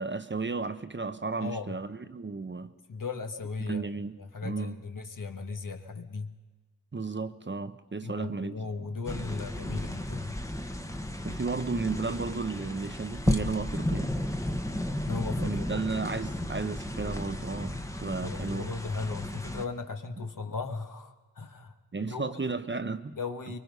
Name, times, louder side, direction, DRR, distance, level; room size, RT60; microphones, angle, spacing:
voice 1, 0.0-2.7 3.7-4.2 4.4-4.8 6.9-8.9 11.2-14.1 15.4-18.7 21.9-23.2, right 4 dB, 30° right, 10 dB, 1.0 m, -33 dB
voice 2, 1.4-1.7 2.6-3.9 4.2-6.3 8.0-10.4 15.0-15.8 18.2-22.4 23.1-23.6, left 4 dB, 55° left, 5 dB, 2.0 m, -37 dB
sound 1, 9.1-19.7, left 1 dB, 10° left, 1.4 m, -33 dB
24.0 x 23.5 x 5.5 m, 1.3 s
wide cardioid pair, 95°, 38 cm